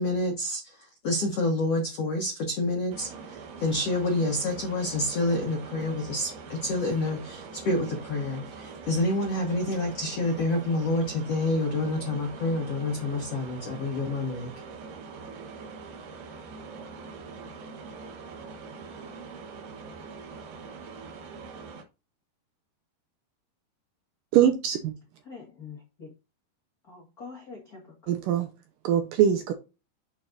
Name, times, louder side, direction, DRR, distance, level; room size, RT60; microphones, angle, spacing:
voice 1, 0.0-14.5, left 2 dB, 70° left, 1.5 m, -28 dB
sound 1, 2.9-21.8, right 5 dB, 65° right, 2.5 m, -43 dB
voice 2, 24.3-24.9 28.1-28.5 28.8-29.5, right 9 dB, 85° right, 1.9 m, -22 dB
voice 3, 25.2-26.1 26.8-28.1, left 5 dB, 85° left, 0.8 m, -45 dB
9.0 x 4.4 x 2.5 m
omnidirectional pair, 4.7 m